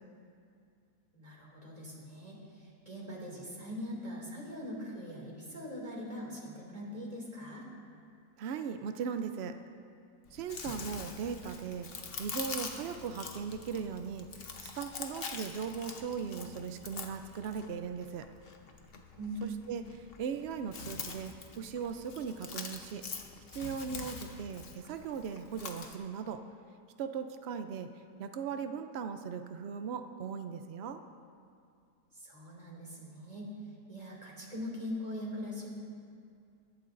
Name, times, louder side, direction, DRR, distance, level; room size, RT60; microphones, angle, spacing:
voice 1, 1.1-7.7 19.2-19.4 32.1-33.5 33.9-35.7, left 1 dB, 25° right, -3 dB, 2.5 m, -42 dB
voice 2, 8.4-9.6 10.3-11.9 12.2-14.3 14.6-18.3 19.4-23.0 23.5-26.4 27.0-27.9 28.2-31.0, right 6 dB, 90° right, 8 dB, 0.5 m, -38 dB
Chewing mastication, 10.3-26.0, left 5 dB, 45° left, 0.9 m, -45 dB
22.5 x 11.5 x 2.6 m, 2.4 s
omnidirectional pair, 1.7 m